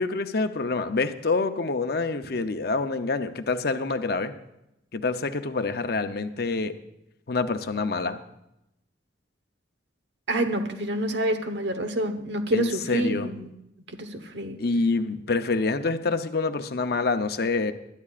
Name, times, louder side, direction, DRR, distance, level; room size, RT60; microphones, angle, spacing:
voice 1, 0.0-4.3 4.9-6.7 7.3-8.2 12.5-13.3 14.6-17.7, left 3 dB, 55° left, 9 dB, 0.7 m, -26 dB
voice 2, 10.3-13.5 14.0-14.6, right 1 dB, 70° right, 7 dB, 1.2 m, -27 dB
21.0 x 11.5 x 2.5 m, 0.85 s
head